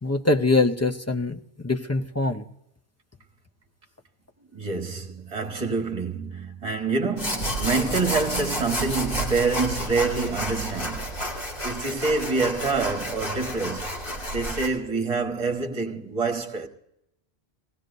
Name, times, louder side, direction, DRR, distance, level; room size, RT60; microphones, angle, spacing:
voice 1, 0.0-2.4, left 3 dB, 20° left, 0.5 m, -23 dB
voice 2, 4.5-11.1 11.6-13.9 14.3-16.7, right 4 dB, 35° right, 1.4 m, -26 dB
sound 1, 7.2-14.7, equal, 60° left, 2.5 m, -30 dB
19.0 x 16.5 x 2.6 m
omnidirectional pair, 1.0 m